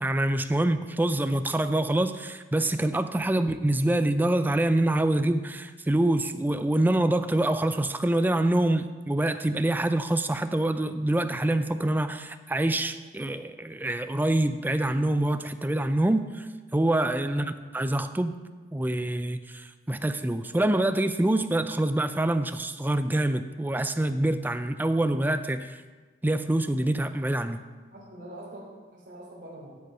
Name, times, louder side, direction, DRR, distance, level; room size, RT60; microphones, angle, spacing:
voice 1, 0.0-18.4 18.7-25.8 26.2-27.6, right 1 dB, 10° right, 10 dB, 0.4 m, -26 dB
voice 2, 17.2-17.6 27.9-29.8, right 1 dB, 45° right, -5 dB, 2.9 m, -44 dB
11.5 x 5.3 x 5.5 m, 1.4 s
head